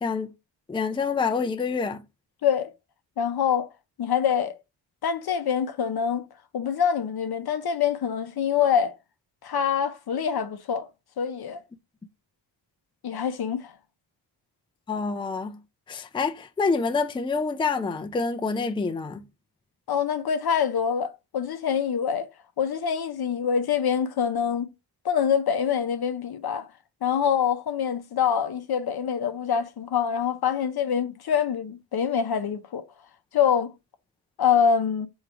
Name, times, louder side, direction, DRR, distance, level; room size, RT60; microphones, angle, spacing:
voice 1, 0.7-2.0 14.9-15.6 15.9-19.2, left 4 dB, 10° left, 0.4 m, -27 dB
voice 2, 3.2-3.7 4.0-4.5 5.0-6.2 6.5-8.9 9.4-10.9 11.2-11.6 13.0-13.7 19.9-22.3 22.6-24.7 25.0-26.7 27.0-32.8 33.3-33.7 34.4-35.1, left 7 dB, 55° left, 0.7 m, -25 dB
3.6 x 3.1 x 4.8 m
cardioid pair, 90°, 44 cm